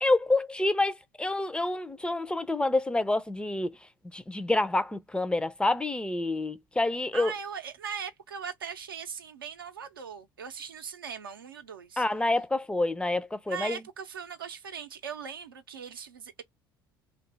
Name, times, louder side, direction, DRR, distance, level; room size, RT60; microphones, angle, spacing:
voice 1, 0.0-3.8 4.1-7.3 12.0-13.8, left 2 dB, 10° left, 0.4 m, -27 dB
voice 2, 7.1-12.0 13.5-16.4, right 7 dB, 80° right, 0.6 m, -39 dB
2.6 x 2.3 x 3.9 m
figure-of-eight pair, 60°, 12 cm